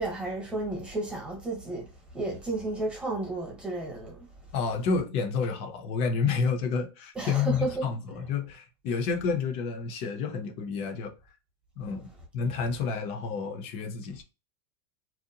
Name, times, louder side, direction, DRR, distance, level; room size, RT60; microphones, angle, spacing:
voice 1, 0.0-1.9 2.1-4.2 7.1-7.8, right 2 dB, 5° right, 1.0 m, -32 dB
voice 2, 4.5-11.1 11.8-14.2, left 5 dB, 45° left, 0.6 m, -30 dB
2.7 x 2.1 x 2.8 m
supercardioid pair, 140°, 15 cm